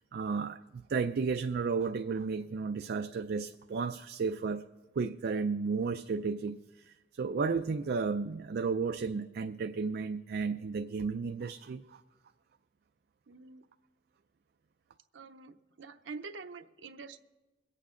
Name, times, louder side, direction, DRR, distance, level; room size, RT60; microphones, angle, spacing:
voice 1, 0.0-4.6 5.0-6.6 6.8-12.0, right 5 dB, 55° right, 8 dB, 0.4 m, -33 dB
voice 2, 13.3-13.7 15.1-17.2, right 4 dB, 80° right, 8 dB, 0.7 m, -46 dB
23.0 x 8.5 x 3.8 m, 1.2 s
head